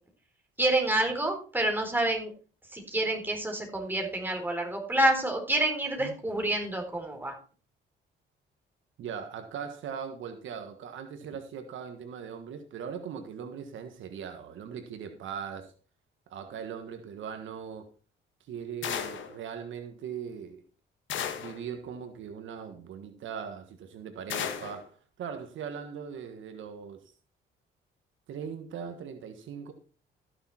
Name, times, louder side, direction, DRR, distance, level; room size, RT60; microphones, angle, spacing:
voice 1, 0.6-2.3 2.7-7.3, right 1 dB, 10° right, 3 dB, 4.0 m, -28 dB
voice 2, 9.0-15.7 16.3-17.9 18.5-20.6 21.4-24.9 25.2-27.1 28.3-29.7, right 7 dB, 75° right, 7 dB, 1.5 m, -40 dB
sound 1, 18.8-19.4 21.1-21.6 24.3-24.8, left 8 dB, 75° left, 1.7 m, -34 dB
14.0 x 6.9 x 4.3 m, 0.37 s
cardioid pair, 90°, 20 cm